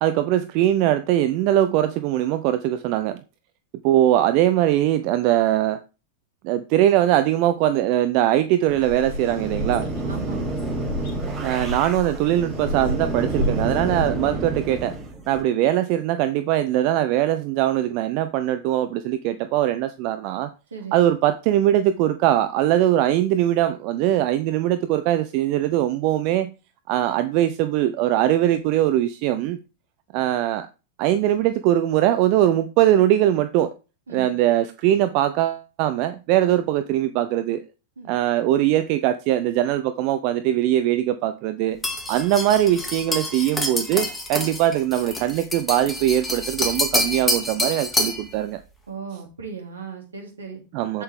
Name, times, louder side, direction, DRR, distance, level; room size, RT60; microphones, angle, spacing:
voice 1, 0.0-3.2 3.8-5.8 6.4-9.9 11.4-14.9 15.3-20.5 20.9-26.5 26.9-29.6 30.1-30.7 31.0-33.7 34.1-37.6 38.1-41.8 42.1-48.6 50.7-51.0, right 12 dB, 45° right, 0.6 m, -21 dB
sound 1, 8.7-15.4, right 2 dB, 20° right, 5.1 m, -30 dB
sound 2, 8.8-14.1, equal, 45° left, 2.2 m, -31 dB
voice 2, 10.0-10.5 20.7-21.0 34.1-34.3 38.0-38.1 48.9-50.6 50.9-51.0, right 5 dB, 70° right, 2.4 m, -36 dB
sound 3, 41.8-48.3, left 1 dB, 10° left, 2.0 m, -27 dB
7.9 x 7.6 x 3.4 m
figure-of-eight pair, 90°, 0 cm